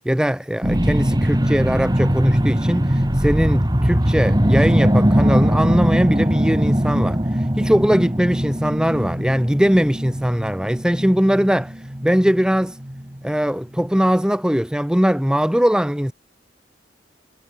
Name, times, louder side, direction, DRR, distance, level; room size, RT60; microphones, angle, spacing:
voice 1, 0.1-12.8 13.2-16.1, equal, 5° right, 0.7 m, -20 dB
sound 1, 0.6-13.3 13.8-13.9, equal, 20° right, 2.3 m, -20 dB
head